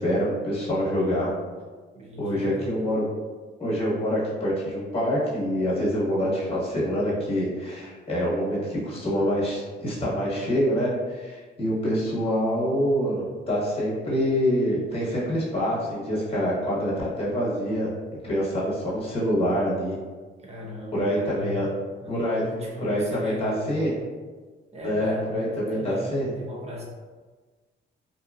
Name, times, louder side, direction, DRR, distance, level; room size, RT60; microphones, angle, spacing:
voice 1, 0.0-1.3 2.2-3.1 3.6-17.9 18.2-20.0 20.9-21.7 22.1-22.4 22.8-23.9 24.8-26.3, equal, 30° left, -6 dB, 1.1 m, -26 dB
voice 2, 1.9-2.7 20.4-21.6 22.0-23.9 24.7-26.8, left 1 dB, 35° right, -2 dB, 0.7 m, -37 dB
2.7 x 2.2 x 2.4 m, 1.4 s
cardioid pair, 90°, 20 cm